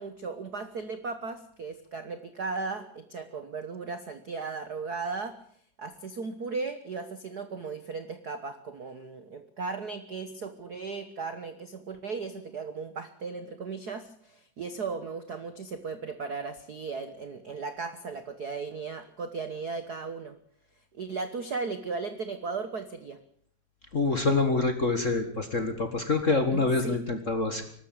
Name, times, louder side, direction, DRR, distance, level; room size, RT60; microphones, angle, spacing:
voice 1, 0.0-5.3 5.8-20.4 20.9-23.2 26.5-27.0, right 4 dB, 60° right, 9 dB, 1.0 m, -36 dB
voice 2, 23.9-27.6, left 3 dB, 35° left, 7 dB, 1.5 m, -26 dB
23.0 x 13.0 x 8.9 m, 0.63 s
omnidirectional pair, 3.6 m